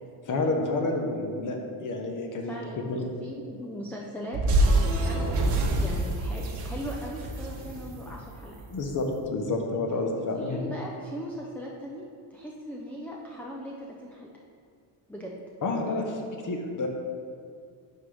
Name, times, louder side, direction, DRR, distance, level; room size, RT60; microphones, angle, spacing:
voice 1, 0.3-3.0 8.7-10.6 15.6-16.9, left 2 dB, 40° left, 2 dB, 1.0 m, -29 dB
voice 2, 2.4-4.4 4.6-8.7 10.3-12.0 12.3-14.3 15.1-15.3, equal, 5° left, -3 dB, 0.4 m, -39 dB
sound 1, 4.3-8.7, right 1 dB, 55° right, 1.1 m, -26 dB
10.5 x 3.9 x 3.3 m, 2.3 s
cardioid pair, 125°, 48 cm